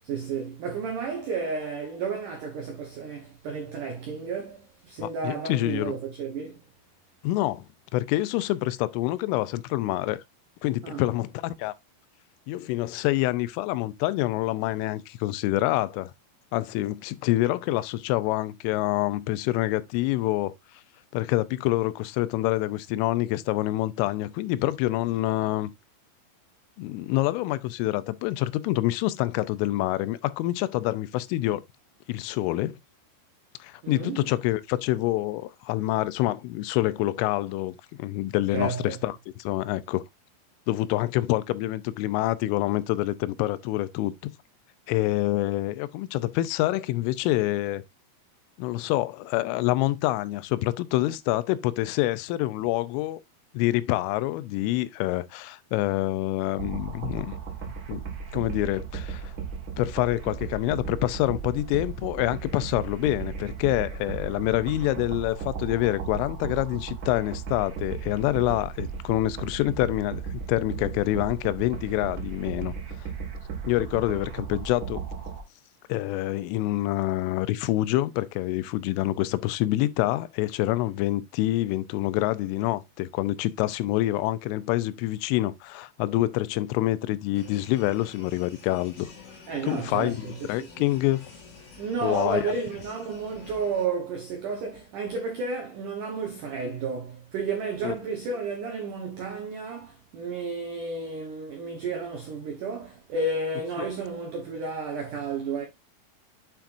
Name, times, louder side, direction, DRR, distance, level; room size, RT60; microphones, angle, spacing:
voice 1, 0.0-6.6 10.8-11.0 33.8-34.3 38.5-39.0 89.5-90.7 91.8-105.6, right 4 dB, 80° right, 1.8 m, -32 dB
voice 2, 5.0-5.9 7.2-7.7 7.9-10.2 10.6-11.7 12.5-16.1 16.5-20.5 21.1-25.7 26.8-31.6 32.1-32.8 33.6-40.0 40.7-44.3 44.9-47.8 48.6-53.2 53.5-57.4 57.9-58.0 58.3-59.3 59.8-72.7 73.0-73.1 73.7-75.0 75.9-89.1 89.6-91.3 92.0-92.5 97.8-98.0, left 16 dB, 90° left, 3.2 m, -26 dB
sound 1, 56.6-75.4, right 6 dB, 55° right, 2.5 m, -36 dB
sound 2, 87.3-93.9, left 4 dB, 55° left, 4.3 m, -49 dB
8.5 x 5.9 x 2.5 m
omnidirectional pair, 5.6 m